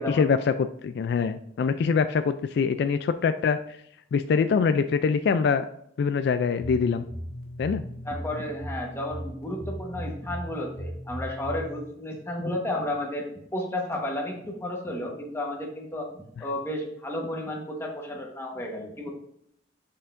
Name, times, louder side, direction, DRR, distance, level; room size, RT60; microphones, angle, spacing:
voice 1, 0.0-3.8 4.1-5.7 6.0-7.0 7.6-7.8 12.4-12.5, left 5 dB, 65° left, 10 dB, 0.3 m, -24 dB
sound 1, 6.4-11.8, equal, 60° right, 1.2 m, -37 dB
voice 2, 8.0-13.3 13.5-16.1 16.4-19.1, left 1 dB, 15° left, -1 dB, 1.2 m, -32 dB
6.6 x 5.6 x 2.5 m, 0.71 s
head